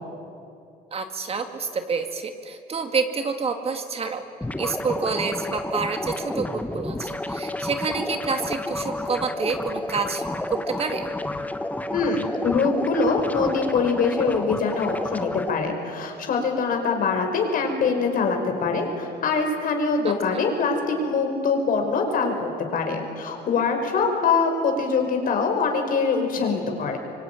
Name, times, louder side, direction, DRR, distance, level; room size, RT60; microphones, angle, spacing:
voice 1, 0.9-4.3 4.6-10.2 10.5-11.1 20.0-20.1, right 5 dB, 35° right, 6 dB, 2.2 m, -28 dB
sound 1, 4.4-15.5, left 1 dB, 10° left, 1.4 m, -30 dB
voice 2, 11.9-27.0, left 4 dB, 55° left, 4 dB, 5.2 m, -23 dB
25.0 x 24.5 x 9.3 m, 2.5 s
cardioid pair, 110°, 17 cm